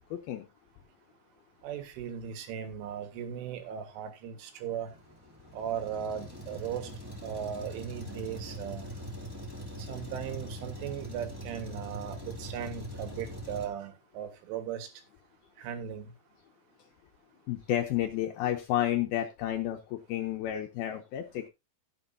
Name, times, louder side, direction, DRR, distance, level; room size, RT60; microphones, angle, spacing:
voice 1, 0.1-0.5 17.5-21.5, left 12 dB, 80° left, 2.2 m, -31 dB
voice 2, 1.6-4.9 5.5-6.9 7.2-8.9 9.8-14.9 15.6-16.1, right 9 dB, 90° right, 4.1 m, -37 dB
Truck, 4.9-13.7, equal, 20° right, 0.6 m, -42 dB
16.5 x 7.7 x 2.7 m
omnidirectional pair, 5.4 m